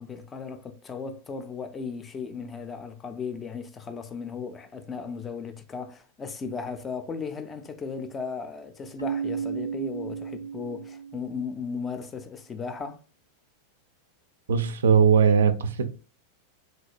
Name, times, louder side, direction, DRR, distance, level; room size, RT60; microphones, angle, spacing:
voice 1, 0.0-13.0, left 5 dB, 20° left, 0.4 m, -36 dB
Keyboard (musical), 9.0-11.6, right 7 dB, 85° left, 0.7 m, -34 dB
voice 2, 14.5-15.9, right 7 dB, 65° right, 0.3 m, -20 dB
3.1 x 2.7 x 2.5 m
figure-of-eight pair, 90°, 0 cm